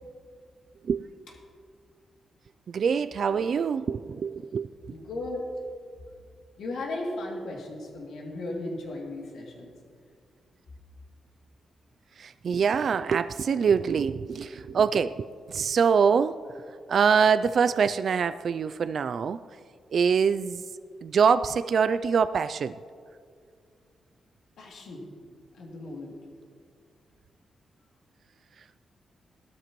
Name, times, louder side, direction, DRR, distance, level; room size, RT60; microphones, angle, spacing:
voice 1, 2.7-4.9 12.2-16.4 16.9-19.4 19.9-20.6 21.0-22.8, right 6 dB, 60° right, 12 dB, 0.3 m, -24 dB
voice 2, 4.9-5.5 6.6-9.7 24.6-26.1, left 2 dB, 85° left, -2 dB, 2.7 m, -36 dB
18.5 x 12.5 x 3.1 m, 2.1 s
cardioid pair, 95°, 0 cm